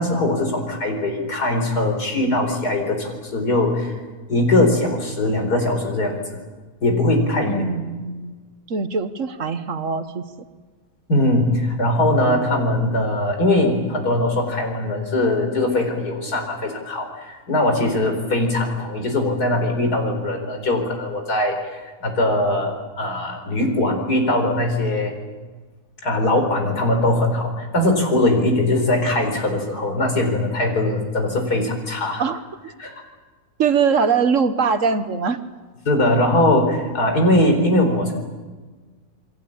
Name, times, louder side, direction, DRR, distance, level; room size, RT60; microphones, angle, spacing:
voice 1, 0.0-3.9 4.3-6.2 6.8-7.6 11.1-25.2 26.0-32.2 32.8-32.9 35.8-38.1, left 1 dB, 90° left, 4 dB, 4.9 m, -21 dB
voice 2, 7.4-8.3 8.7-10.2 32.2-32.4 33.6-35.4 37.8-38.1, right 5 dB, 55° right, 10 dB, 1.5 m, -22 dB
28.5 x 21.5 x 8.7 m, 1.3 s
omnidirectional pair, 1.6 m